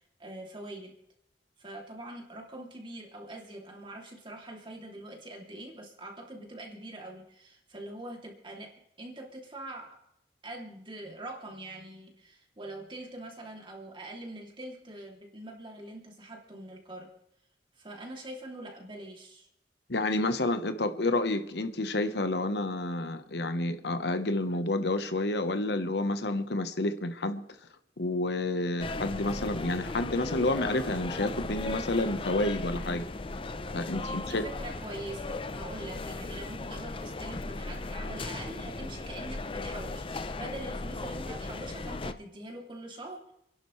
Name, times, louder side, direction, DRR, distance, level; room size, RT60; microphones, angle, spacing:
voice 1, 0.2-0.9 1.6-10.0 10.4-17.1 17.8-19.5 34.0-43.3, right 1 dB, 30° right, 2.8 m, -43 dB
voice 2, 19.9-27.4 28.0-33.1 33.7-34.4, left 2 dB, 70° left, 1.1 m, -29 dB
sound 1, 28.8-42.1, left 3 dB, 30° left, 0.6 m, -37 dB
29.5 x 11.0 x 3.2 m
head